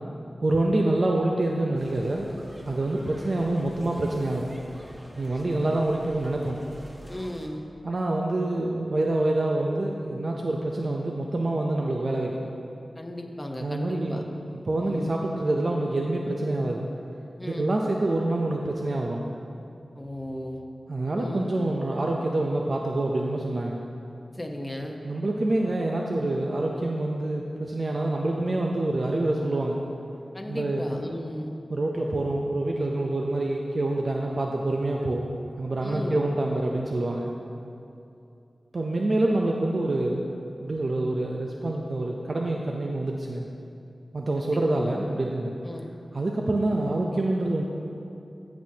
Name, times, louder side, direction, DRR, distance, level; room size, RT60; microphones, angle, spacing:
voice 1, 0.4-2.3 2.6-4.6 5.2-6.6 7.8-12.5 13.6-14.3 14.7-16.9 17.4-19.3 20.9-23.8 25.0-29.8 30.5-30.9 31.7-35.2 35.6-37.3 38.7-40.3 40.6-43.5 44.1-45.5 46.1-47.6, right 2 dB, 50° right, 0 dB, 0.5 m, -26 dB
sound 1, 1.7-7.5, equal, 20° right, 0.9 m, -46 dB
voice 2, 7.1-7.6 13.0-14.2 14.8-15.1 17.4-17.8 19.9-20.6 21.1-21.5 24.3-25.0 30.3-31.5 35.8-36.3 44.4-44.9 45.6-45.9, left 1 dB, 15° left, 2 dB, 0.9 m, -36 dB
15.0 x 6.2 x 2.8 m, 2.6 s
wide cardioid pair, 75°, 0 cm